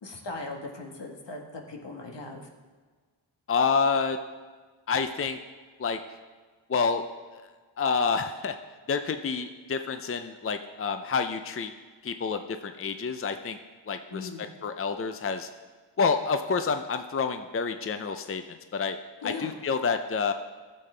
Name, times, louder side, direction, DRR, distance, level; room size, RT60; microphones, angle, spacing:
voice 1, 0.0-2.5 14.1-14.5 19.2-19.5, left 3 dB, 70° left, 1 dB, 1.6 m, -38 dB
voice 2, 3.5-4.2 4.9-5.4 5.8-6.0 6.7-7.0 7.3-7.4 7.8-8.6 8.9-11.7 12.0-13.6 13.9-14.3 14.6-15.5 16.0-18.4 18.7-19.0 19.2-20.3, left 5 dB, 30° left, 8 dB, 0.5 m, -28 dB
14.5 x 7.6 x 3.4 m, 1.4 s
cardioid pair, 60°, 44 cm